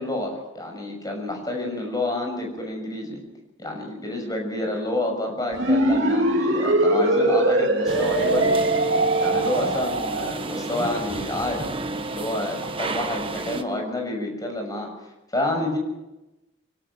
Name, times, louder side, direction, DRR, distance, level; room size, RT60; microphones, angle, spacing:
voice 1, 0.0-3.2 3.6-8.5 9.2-11.7 12.0-14.9 15.3-15.8, left 1 dB, 20° left, 2 dB, 6.4 m, -28 dB
sound 1, 5.5-10.3, right 1 dB, 65° right, 3.0 m, -22 dB
sound 2, 7.9-13.6, right 3 dB, 25° right, 1.2 m, -29 dB
25.0 x 18.0 x 6.3 m, 0.96 s
head